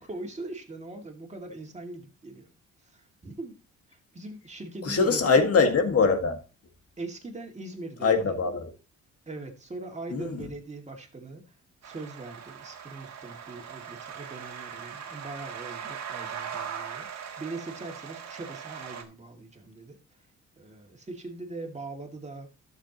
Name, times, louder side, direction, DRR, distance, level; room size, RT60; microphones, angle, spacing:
voice 1, 0.0-2.5 2.8-3.5 3.9-5.4 7.0-8.4 9.3-11.4 11.8-20.0 20.6-22.5, right 2 dB, 25° right, 2.3 m, -41 dB
voice 2, 4.8-6.4 8.0-8.7 10.1-10.4, left 4 dB, 50° left, 1.9 m, -23 dB
sound 1, 11.8-19.0, right 7 dB, 60° right, 1.7 m, -40 dB
12.5 x 7.0 x 3.0 m
cardioid pair, 90°, 30 cm